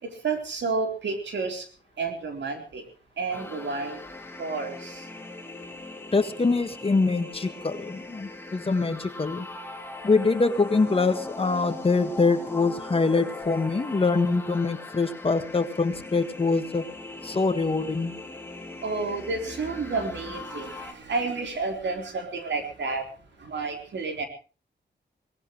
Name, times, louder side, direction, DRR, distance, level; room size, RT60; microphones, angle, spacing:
voice 1, 0.0-1.7 2.0-2.8 3.2-4.0 4.4-5.1 18.8-23.1 23.4-24.3, right 4 dB, 90° right, 5 dB, 3.9 m, -30 dB
sound 1, 3.3-20.9, left 2 dB, 10° left, 2.9 m, -40 dB
voice 2, 6.1-9.5 10.0-16.9 17.2-18.1, left 3 dB, 30° left, 9 dB, 1.7 m, -24 dB
23.5 x 18.5 x 3.2 m, 0.36 s
wide cardioid pair, 135°, 18 cm